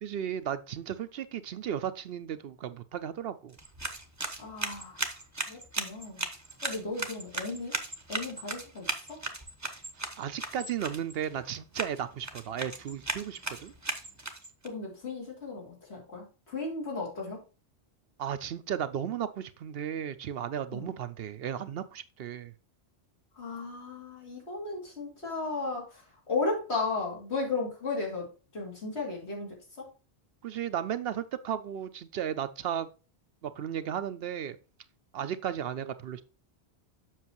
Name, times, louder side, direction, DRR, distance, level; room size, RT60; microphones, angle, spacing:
voice 1, 0.0-3.6 10.2-13.7 18.2-22.5 30.4-32.9 33.4-34.6 35.1-36.2, right 9 dB, 65° right, 0.7 m, -35 dB
sound 1, 3.5-14.7, right 2 dB, 20° right, 0.7 m, -37 dB
voice 2, 4.4-5.1 5.5-6.2 6.6-7.8 8.1-9.2 14.6-17.4 20.7-20.9 23.4-29.9, left 3 dB, 75° left, 3.0 m, -35 dB
7.5 x 6.1 x 3.0 m
omnidirectional pair, 1.1 m